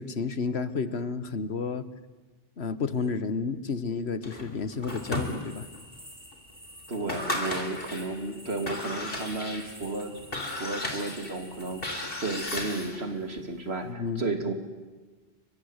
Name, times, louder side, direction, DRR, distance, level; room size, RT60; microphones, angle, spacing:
voice 1, 0.0-1.9 2.6-5.7 13.8-14.2, left 4 dB, 85° left, 13 dB, 1.6 m, -31 dB
sound 1, 4.2-5.8 6.3-6.4 6.9-8.1 8.5-13.1, left 1 dB, 60° left, 3.9 m, -35 dB
sound 2, 4.9-12.4, equal, 5° right, 7.1 m, -49 dB
voice 2, 6.9-10.1 10.6-11.8 12.2-14.5, right 2 dB, 80° right, 6 dB, 3.1 m, -33 dB
30.0 x 24.0 x 8.2 m, 1.3 s
omnidirectional pair, 1.1 m